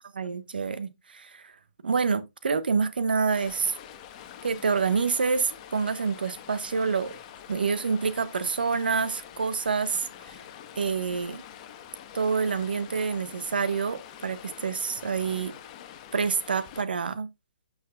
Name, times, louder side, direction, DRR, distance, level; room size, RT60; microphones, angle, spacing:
voice 1, 0.1-1.5 1.8-3.7 4.4-7.1 7.5-10.4 10.7-11.4 12.1-15.5 16.1-17.3, right 5 dB, 80° right, 1.2 m, -27 dB
Stream, 3.3-16.8, left 9 dB, 35° left, 1.2 m, -46 dB
12.0 x 6.3 x 2.3 m
hypercardioid pair, 145°, 5 cm